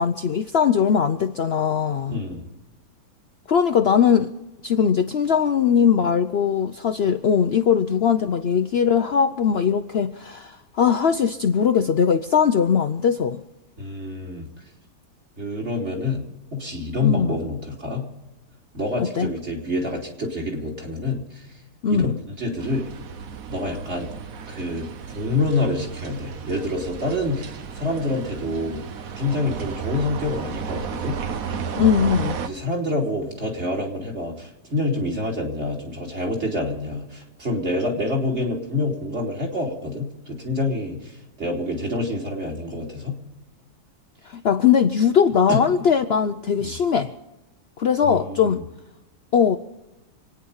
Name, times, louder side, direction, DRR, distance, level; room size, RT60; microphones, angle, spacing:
voice 1, 0.0-2.2 3.5-4.3 4.6-13.4 17.0-17.4 19.0-19.3 21.8-22.2 31.8-32.4 44.3-47.1 47.8-48.6 49.3-49.6, left 7 dB, 55° left, 8 dB, 0.8 m, -20 dB
voice 2, 2.1-2.4 13.8-14.5 15.4-16.2 16.5-18.0 18.7-21.4 21.9-22.9 23.5-24.1 24.5-28.8 29.2-31.2 32.4-43.2 45.5-45.6 46.6-46.8 48.0-48.6, left 2 dB, 50° right, -1 dB, 3.5 m, -27 dB
sound 1, 22.6-32.5, right 6 dB, 70° right, 1.4 m, -33 dB
26.5 x 9.7 x 5.6 m, 0.97 s
omnidirectional pair, 1.6 m